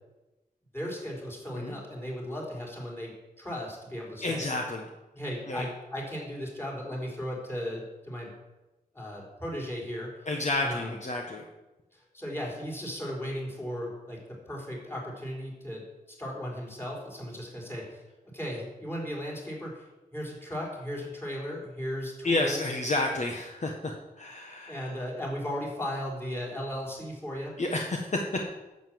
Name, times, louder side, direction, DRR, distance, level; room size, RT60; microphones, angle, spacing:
voice 1, 0.7-4.4 5.1-8.3 8.9-10.1 10.6-11.0 11.9-15.8 16.1-22.6 24.7-27.5, equal, 15° left, -2 dB, 4.1 m, -36 dB
voice 2, 4.2-4.9 5.5-5.7 10.3-11.4 22.2-24.9 27.6-28.4, left 2 dB, 50° left, 1 dB, 1.3 m, -30 dB
11.0 x 7.4 x 7.7 m, 1.0 s
wide cardioid pair, 125°, 16 cm